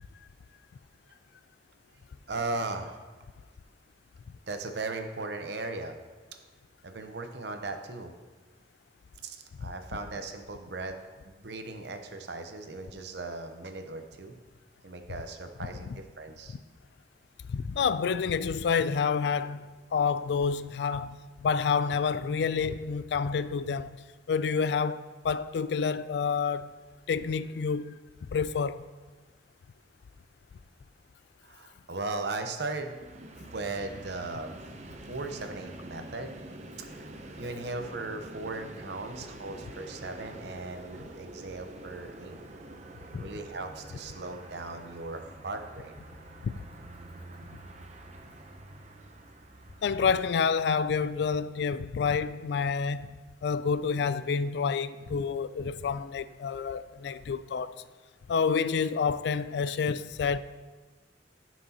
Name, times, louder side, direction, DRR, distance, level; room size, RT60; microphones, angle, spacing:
voice 1, 2.3-3.0 4.5-6.0 6.8-8.1 9.2-10.9 11.2-14.4 14.8-16.5 31.4-33.0 33.3-34.6 35.0-36.4 36.8-42.4 43.1-45.9, right 3 dB, 70° right, 0.9 m, -37 dB
voice 2, 17.5-24.0 24.3-26.7 27.1-28.0 28.3-28.8 43.1-43.2 46.4-46.5 49.8-57.8 58.3-60.4, left 5 dB, 70° left, 0.3 m, -28 dB
Train, 32.7-50.8, right 1 dB, 40° right, 0.7 m, -47 dB
13.5 x 6.0 x 2.9 m
head